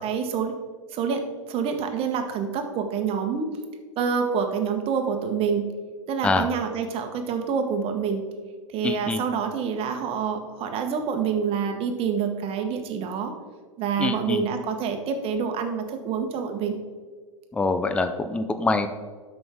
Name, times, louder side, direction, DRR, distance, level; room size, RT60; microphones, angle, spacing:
voice 1, 0.0-0.5 0.9-3.6 4.0-5.7 6.1-8.3 8.7-13.3 13.8-16.8, right 6 dB, 35° right, 5 dB, 1.3 m, -27 dB
voice 2, 8.8-9.2 14.0-14.4 17.5-18.9, left 3 dB, 5° left, 9 dB, 0.5 m, -24 dB
12.5 x 5.5 x 3.6 m, 1.5 s
hypercardioid pair, 105°, 16 cm